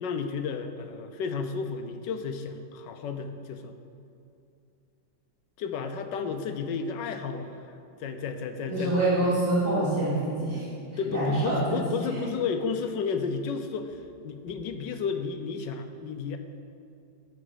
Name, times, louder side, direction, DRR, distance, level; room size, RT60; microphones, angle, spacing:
voice 1, 0.0-3.8 5.6-9.3 11.0-16.4, left 5 dB, 75° left, 7 dB, 1.3 m, -32 dB
voice 2, 8.7-10.6 11.0-12.2, right 1 dB, 35° right, -14 dB, 3.5 m, -26 dB
12.5 x 5.0 x 7.9 m, 2.6 s
omnidirectional pair, 2.1 m